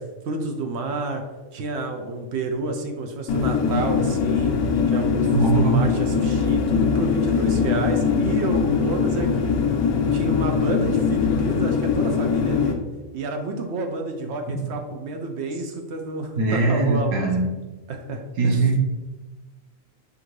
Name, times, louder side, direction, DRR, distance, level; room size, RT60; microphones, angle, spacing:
voice 1, 0.3-1.2 1.5-4.5 4.9-9.5 10.1-12.8 13.1-17.3 17.9-18.7, right 2 dB, 65° right, 4 dB, 0.7 m, -29 dB
sound 1, 3.3-12.7, left 6 dB, 90° left, 1.1 m, -22 dB
voice 2, 5.3-5.8 16.4-17.5 18.4-18.8, right 3 dB, 85° right, -1 dB, 1.3 m, -20 dB
5.8 x 2.6 x 3.1 m, 1.2 s
omnidirectional pair, 1.5 m